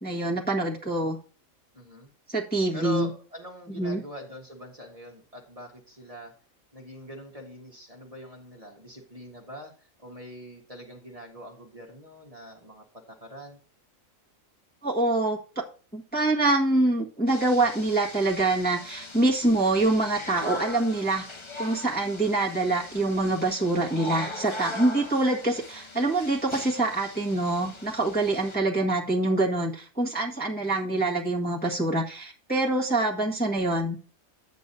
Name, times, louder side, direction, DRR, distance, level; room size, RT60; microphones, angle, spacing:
voice 1, 0.0-1.2 2.3-3.1 3.8-4.0 14.8-15.6 15.9-21.2 21.6-34.0, right 2 dB, 5° left, -5 dB, 1.5 m, -25 dB
voice 2, 1.7-2.1 2.7-6.3 6.7-13.6, left 1 dB, 25° right, -1 dB, 1.6 m, -43 dB
sound 1, 17.3-28.6, left 2 dB, 25° left, 0.8 m, -40 dB
10.5 x 8.4 x 2.7 m, 0.39 s
omnidirectional pair, 1.4 m